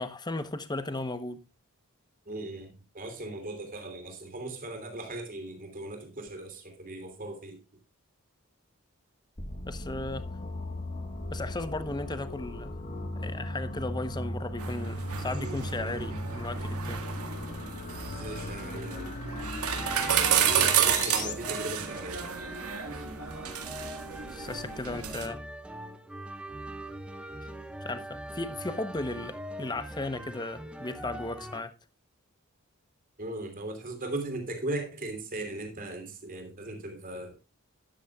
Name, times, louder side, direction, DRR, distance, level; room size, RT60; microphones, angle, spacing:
voice 1, 0.0-1.4 9.7-10.3 11.3-12.7 13.2-17.1 24.3-25.4 27.8-31.7, left 2 dB, 20° left, 0.9 m, -36 dB
voice 2, 2.2-7.6 18.2-19.2 20.4-22.3 33.2-37.4, right 2 dB, 40° right, 3.1 m, -38 dB
sound 1, 9.4-21.3, left 1 dB, 35° left, 1.4 m, -37 dB
sound 2, 14.6-25.3, right 9 dB, 80° right, 1.8 m, -31 dB
sound 3, 19.7-31.6, right 1 dB, 5° right, 1.1 m, -42 dB
12.5 x 10.5 x 2.3 m
head